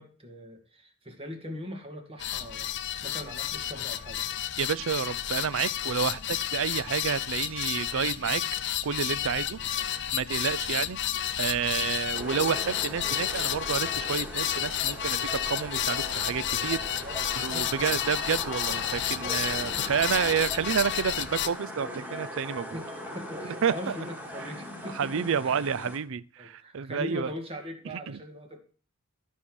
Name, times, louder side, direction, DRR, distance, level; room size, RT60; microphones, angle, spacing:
voice 1, 0.0-4.2 9.6-9.9 16.9-18.0 22.7-25.6 26.4-28.6, left 1 dB, 25° right, 2.1 m, -41 dB
sound 1, 2.2-21.5, left 11 dB, 55° left, 0.6 m, -31 dB
voice 2, 4.6-8.4 8.8-11.0 11.4-17.0 17.4-22.8 23.4-23.9 25.0-27.3 28.1-28.2, right 7 dB, 65° right, 0.5 m, -30 dB
sound 2, 12.1-26.0, equal, 10° right, 2.4 m, -40 dB
12.5 x 5.6 x 6.2 m
head